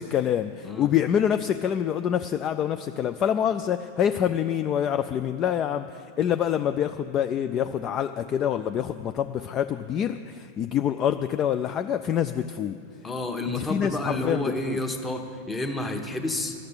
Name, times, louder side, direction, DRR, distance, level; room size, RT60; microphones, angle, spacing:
voice 1, 0.1-12.8 13.5-14.8, left 9 dB, 30° left, 9 dB, 0.3 m, -26 dB
voice 2, 13.0-16.5, left 2 dB, 15° left, 5 dB, 1.0 m, -30 dB
13.5 x 6.5 x 8.7 m, 2.4 s
figure-of-eight pair, 90°, 0 cm